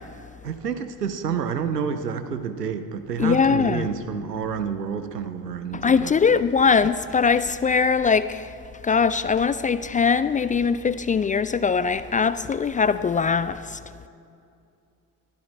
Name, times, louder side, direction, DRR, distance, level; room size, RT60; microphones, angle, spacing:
voice 1, 0.4-6.2, right 6 dB, 85° right, 10 dB, 0.7 m, -29 dB
voice 2, 3.2-3.9 5.7-8.5 8.8-13.8, left 5 dB, 20° left, 15 dB, 0.3 m, -21 dB
22.0 x 14.5 x 4.3 m, 2.5 s
figure-of-eight pair, 40°, 47 cm